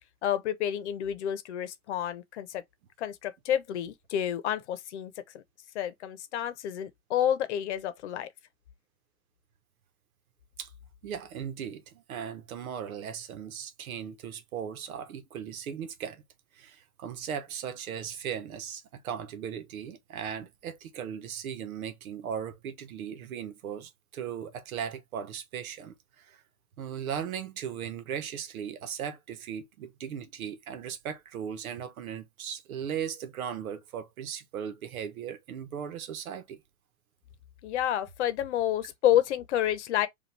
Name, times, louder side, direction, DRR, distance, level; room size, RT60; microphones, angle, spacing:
voice 1, 0.2-2.6 3.0-5.4 5.7-8.3 37.6-40.1, left 11 dB, 55° left, 0.9 m, -29 dB
voice 2, 11.0-16.2 16.5-26.4 26.8-36.6, right 8 dB, 85° right, 1.1 m, -37 dB
5.2 x 2.6 x 3.3 m
supercardioid pair, 170°, 41 cm